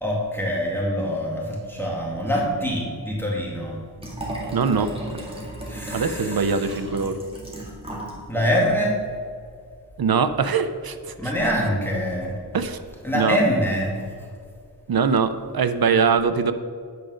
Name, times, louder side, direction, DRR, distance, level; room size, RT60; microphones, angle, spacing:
voice 1, 0.0-3.8 5.7-6.8 8.3-9.0 11.2-12.4 13.0-14.0, equal, 5° left, -4 dB, 2.1 m, -24 dB
Liquid, 4.0-8.2 8.5-8.6, right 1 dB, 15° right, 2.1 m, -35 dB
voice 2, 4.5-4.9 5.9-7.1 10.0-11.3 12.5-12.8 13.1-13.4 14.9-16.5, right 5 dB, 65° right, 11 dB, 0.6 m, -22 dB
9.3 x 5.1 x 6.3 m, 2.2 s
wide cardioid pair, 80°, 39 cm